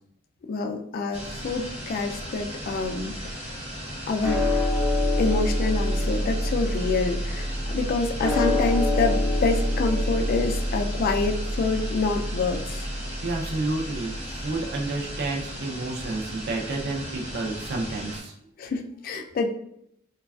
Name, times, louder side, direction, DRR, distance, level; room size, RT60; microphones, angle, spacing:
voice 1, 0.5-3.4 4.1-4.4 5.2-12.9 18.6-19.5, left 3 dB, 45° left, 4 dB, 0.3 m, -27 dB
sound 1, 1.1-18.2, equal, 30° right, 0.9 m, -37 dB
sound 2, 4.2-14.6, left 1 dB, 85° right, 0.8 m, -27 dB
voice 2, 13.2-14.2 14.4-18.3, right 2 dB, 55° right, 0 dB, 0.5 m, -30 dB
3.1 x 2.3 x 2.3 m, 0.72 s
head